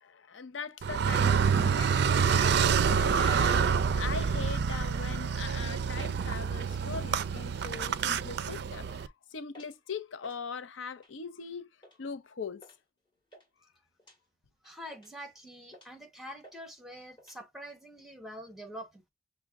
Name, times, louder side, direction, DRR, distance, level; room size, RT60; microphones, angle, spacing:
voice 1, 0.0-11.7 12.0-12.7, left 5 dB, 80° left, 0.5 m, -41 dB
Car, 0.8-9.1, right 6 dB, 55° right, 0.4 m, -27 dB
sound 1, 6.0-6.2 6.7-7.0 7.3-7.5 7.9-8.5 8.8-9.0 9.5-9.8 10.1-10.4 11.0-11.2 11.8-12.0 12.6-12.8 13.0-13.5 14.0-14.2 14.6-15.2 15.7-16.0 16.4-16.6 16.9-17.4, left 1 dB, 25° left, 2.1 m, -56 dB
voice 2, 14.6-19.1, equal, ahead, 1.0 m, -45 dB
6.1 x 2.2 x 3.4 m
head